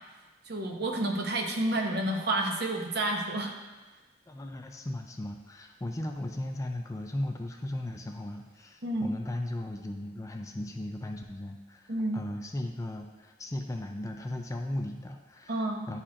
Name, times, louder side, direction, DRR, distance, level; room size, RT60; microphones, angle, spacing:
voice 1, 0.5-3.5 8.8-9.1 11.9-12.2 15.5-15.9, right 1 dB, 60° right, 2 dB, 0.8 m, -30 dB
voice 2, 4.3-16.0, left 1 dB, 15° left, 4 dB, 0.4 m, -37 dB
9.9 x 4.2 x 2.5 m, 1.2 s
head